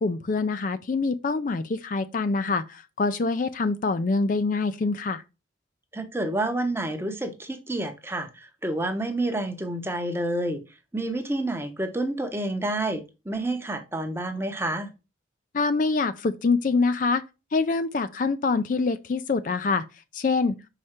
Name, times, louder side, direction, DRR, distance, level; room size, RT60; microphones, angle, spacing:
voice 1, 0.0-5.2 15.5-17.2 17.5-19.8 20.1-20.6, left 4 dB, 45° left, 0.4 m, -25 dB
voice 2, 5.9-10.6 10.9-14.9, right 1 dB, 10° right, 0.8 m, -29 dB
5.5 x 4.9 x 4.3 m
head